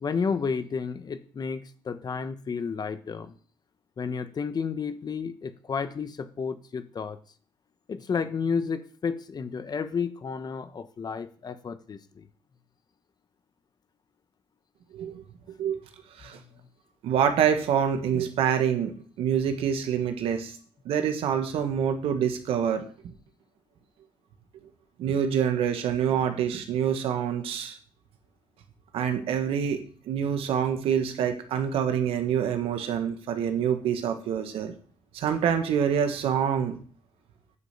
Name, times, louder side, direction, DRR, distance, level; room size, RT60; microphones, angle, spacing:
voice 1, 0.0-3.3 4.0-7.2 7.9-12.3, left 5 dB, 45° left, 11 dB, 1.1 m, -31 dB
voice 2, 17.0-20.6 20.8-23.1 25.0-27.8 28.9-34.7 35.1-36.7, right 8 dB, 75° right, 7 dB, 1.5 m, -26 dB
9.8 x 5.3 x 6.6 m, 0.44 s
supercardioid pair, 65°, 10 cm